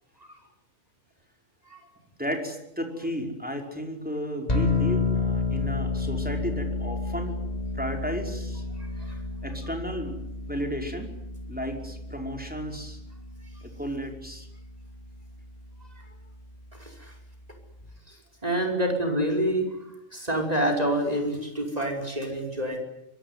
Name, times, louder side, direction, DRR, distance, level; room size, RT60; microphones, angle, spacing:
voice 1, 2.2-7.4 7.7-8.6 9.4-11.1 11.5-13.0 13.6-14.5, equal, 5° right, 2 dB, 5.3 m, -33 dB
sound 1, 4.5-17.9, left 3 dB, 30° left, 3.7 m, -32 dB
voice 2, 8.8-9.1 16.0-16.1 16.8-17.1 18.1-22.8, right 1 dB, 30° right, 4 dB, 5.5 m, -28 dB
25.5 x 24.0 x 9.7 m, 0.83 s
omnidirectional pair, 1.4 m